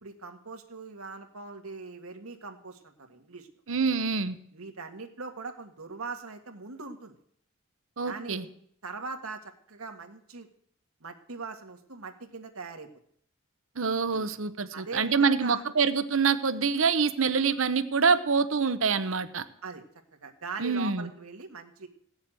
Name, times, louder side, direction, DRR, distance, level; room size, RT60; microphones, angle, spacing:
voice 1, 0.0-3.5 4.5-7.1 8.0-8.5 8.8-10.5 11.0-12.9 14.1-14.3 14.7-15.6 19.6-19.8 20.2-21.9, right 4 dB, 85° right, 5 dB, 1.8 m, -41 dB
voice 2, 3.7-4.4 8.0-8.4 13.8-19.4 20.6-21.1, right 5 dB, 65° right, 12 dB, 0.9 m, -26 dB
16.5 x 7.3 x 9.0 m, 0.66 s
head